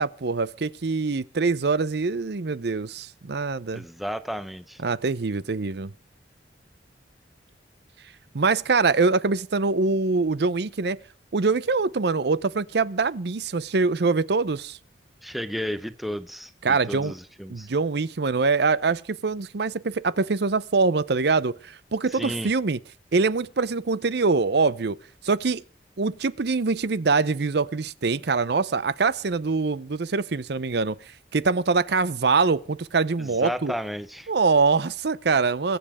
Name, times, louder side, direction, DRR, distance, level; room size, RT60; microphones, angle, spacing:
voice 1, 0.0-3.8 4.8-5.9 8.3-11.0 11.3-14.8 16.6-17.1 17.5-22.8 23.1-25.0 25.2-25.6 26.0-31.0 31.3-33.7 34.3-35.8, right 4 dB, 60° right, 0.6 m, -24 dB
voice 2, 3.7-4.8 15.2-17.7 22.1-22.5 33.2-34.3, equal, ahead, 0.6 m, -33 dB
22.5 x 7.7 x 4.8 m
head